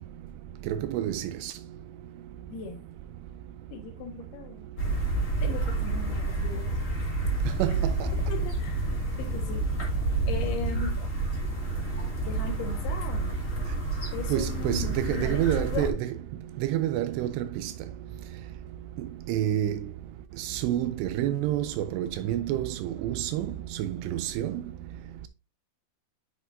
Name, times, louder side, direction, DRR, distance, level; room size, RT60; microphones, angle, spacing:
voice 1, 0.7-1.5 7.6-8.1 14.3-16.1 16.6-17.7 19.0-19.8 20.4-24.6, right 12 dB, 85° right, 2.6 m, -29 dB
voice 2, 2.5-2.8 3.7-4.7 5.4-6.7 7.6-7.7 8.1-9.8 10.3-11.1 12.2-13.3 14.1-15.9, left 5 dB, 70° left, 3.0 m, -38 dB
sound 1, 4.8-15.9, right 3 dB, 30° left, 1.4 m, -29 dB
8.1 x 6.1 x 2.6 m
omnidirectional pair, 5.1 m